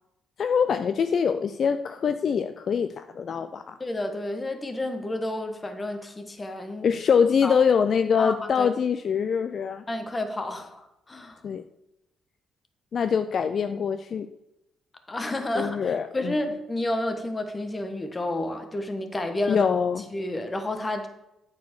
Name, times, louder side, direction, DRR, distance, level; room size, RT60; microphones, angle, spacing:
voice 1, 0.4-3.8 6.8-9.8 11.4-11.6 12.9-14.3 15.6-16.4 19.5-20.0, left 6 dB, 55° left, 9 dB, 0.4 m, -24 dB
voice 2, 3.8-6.9 7.4-7.5 8.2-8.7 9.9-11.4 15.1-19.7 20.1-21.1, left 1 dB, 20° left, 6 dB, 1.2 m, -30 dB
8.3 x 4.5 x 6.0 m, 0.89 s
cardioid pair, 90°, 0 cm